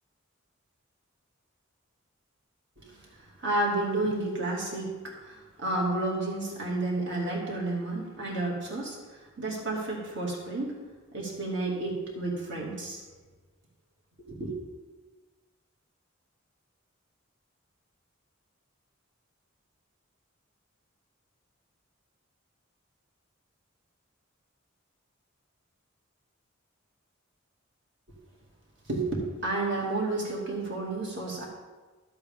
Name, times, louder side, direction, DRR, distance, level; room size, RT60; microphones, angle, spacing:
voice 1, 3.4-4.9 5.2-10.7 11.1-13.1 14.2-14.5 28.9-31.5, right 2 dB, 65° right, -3 dB, 2.4 m, -31 dB
12.0 x 8.0 x 3.6 m, 1.3 s
head